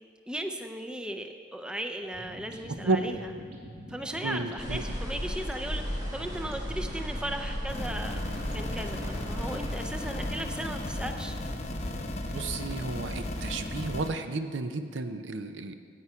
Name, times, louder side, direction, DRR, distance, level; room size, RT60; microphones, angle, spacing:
voice 1, 0.3-3.3 3.9-11.4, right 1 dB, 5° right, 5 dB, 0.4 m, -37 dB
sound 1, 2.0-9.7, equal, 55° right, 2.0 m, -45 dB
voice 2, 4.2-4.8 12.3-15.7, right 3 dB, 80° right, 9 dB, 0.6 m, -32 dB
sound 2, 4.6-11.3, equal, 20° right, 2.3 m, -36 dB
sound 3, 7.7-14.1, left 1 dB, 35° left, 0.7 m, -35 dB
9.9 x 8.4 x 4.8 m, 2.3 s
head